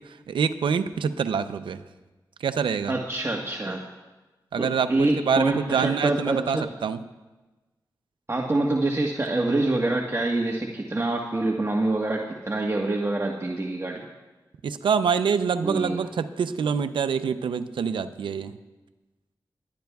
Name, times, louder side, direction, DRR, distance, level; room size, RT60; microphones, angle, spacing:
voice 1, 0.3-1.8 2.4-2.9 4.5-7.0 14.6-18.6, right 6 dB, 90° right, 11 dB, 0.6 m, -26 dB
voice 2, 2.9-3.8 4.6-6.6 8.3-14.0 15.6-16.1, right 2 dB, 35° right, -1 dB, 1.4 m, -26 dB
27.0 x 11.5 x 2.4 m, 1.2 s
cardioid pair, 40°, 8 cm